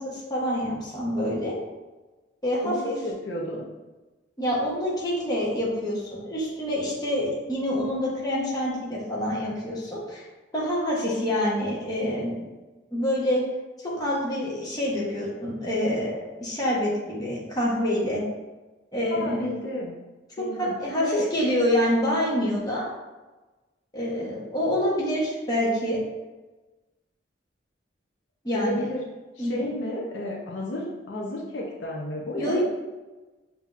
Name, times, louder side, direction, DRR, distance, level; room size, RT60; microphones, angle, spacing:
voice 1, 0.0-1.6 2.4-2.9 4.4-10.2 10.5-12.4 12.9-13.4 13.8-18.2 18.9-19.5 20.6-22.8 23.9-26.0 28.4-28.9 29.4-29.7 32.4-32.6, left 1 dB, 20° left, -6 dB, 0.9 m, -26 dB
voice 2, 2.6-3.7 19.1-19.9 20.4-21.2 28.5-29.0 29.4-32.6, left 1 dB, 70° left, -2 dB, 0.6 m, -32 dB
5.6 x 2.7 x 2.4 m, 1.2 s
head